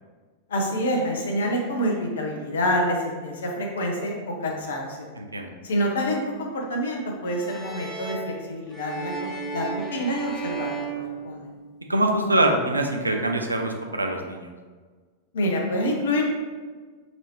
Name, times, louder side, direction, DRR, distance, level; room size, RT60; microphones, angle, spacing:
voice 1, 0.5-5.1 5.6-11.5 15.3-16.3, equal, 65° left, 1 dB, 0.7 m, -27 dB
voice 2, 5.2-5.5 11.9-14.5, right 1 dB, 80° right, 3 dB, 0.4 m, -24 dB
sound 1, 7.3-11.9, right 4 dB, 5° left, 1.0 m, -34 dB
4.0 x 2.7 x 3.1 m, 1.5 s
figure-of-eight pair, 90°, 0 cm